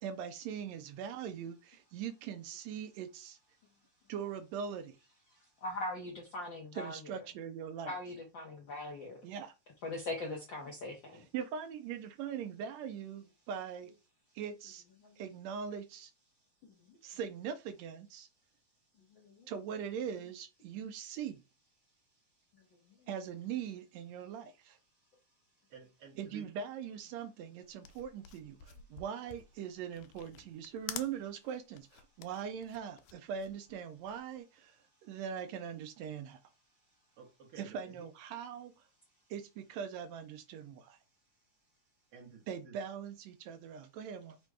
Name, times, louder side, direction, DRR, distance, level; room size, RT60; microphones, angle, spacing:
voice 1, 0.0-3.4 4.1-5.0 6.7-8.0 9.2-9.5 11.1-13.9 14.4-14.8 15.2-16.1 17.0-18.3 19.5-21.4 23.1-24.8 26.2-36.4 37.6-38.7 39.3-41.0 42.5-44.4, right 7 dB, 80° right, 1.7 m, -41 dB
voice 2, 5.6-7.2 7.9-9.2 9.8-11.3 15.0-15.2 19.1-19.5, left 2 dB, 70° left, 1.1 m, -41 dB
voice 3, 25.7-26.5 37.2-38.1 42.1-42.8, right 5 dB, 65° right, 1.5 m, -53 dB
sound 1, 27.6-34.3, left 11 dB, 90° left, 2.0 m, -49 dB
4.9 x 2.2 x 4.7 m
omnidirectional pair, 3.3 m